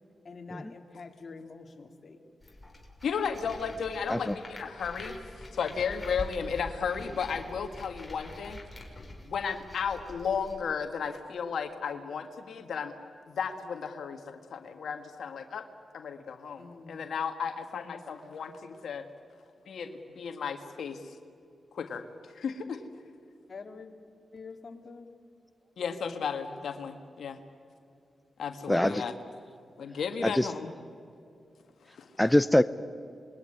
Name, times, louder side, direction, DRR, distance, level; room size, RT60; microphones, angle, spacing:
voice 1, 0.2-2.2 16.6-17.0 23.5-23.9 24.3-25.1, left 4 dB, 55° left, 4 dB, 2.8 m, -46 dB
sound 1, 2.4-10.6, left 1 dB, 25° left, 5.6 m, -45 dB
voice 2, 3.0-8.6 9.2-12.9 13.3-15.6 15.9-19.0 19.7-21.2 21.7-22.8 25.8-27.4 28.4-29.1 29.8-30.7 31.9-32.1, left 6 dB, 80° left, 6 dB, 1.7 m, -34 dB
voice 3, 28.7-29.0 30.2-30.5 32.2-32.6, left 1 dB, 10° left, 13 dB, 0.7 m, -23 dB
26.5 x 21.5 x 9.9 m, 2.5 s
cardioid pair, 55°, 0 cm